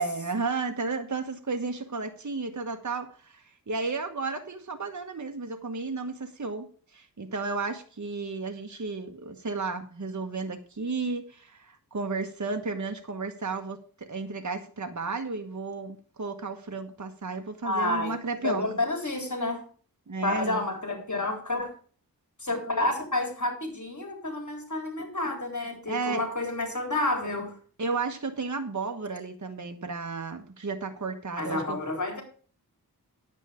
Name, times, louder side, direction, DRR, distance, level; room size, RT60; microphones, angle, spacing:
voice 1, 0.0-6.7 6.9-18.7 20.1-20.6 25.9-26.2 27.8-31.8, right 4 dB, 50° right, 5 dB, 1.3 m, -33 dB
voice 2, 17.6-18.1 18.4-19.6 20.2-21.7 22.4-27.6 31.3-32.2, left 2 dB, 50° left, 3 dB, 3.6 m, -29 dB
9.8 x 8.3 x 5.0 m, 0.43 s
wide cardioid pair, 55°, 37 cm